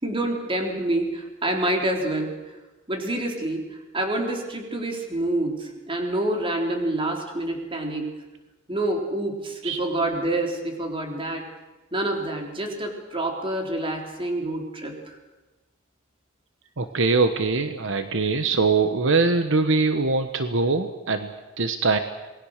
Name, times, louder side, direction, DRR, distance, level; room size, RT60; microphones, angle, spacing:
voice 1, 0.0-2.4 2.9-8.2 8.7-11.5 11.9-15.2, right 1 dB, 25° right, 2 dB, 3.8 m, -27 dB
voice 2, 16.8-22.0, right 3 dB, 70° right, 8 dB, 1.2 m, -22 dB
27.5 x 20.5 x 6.7 m, 1.1 s
head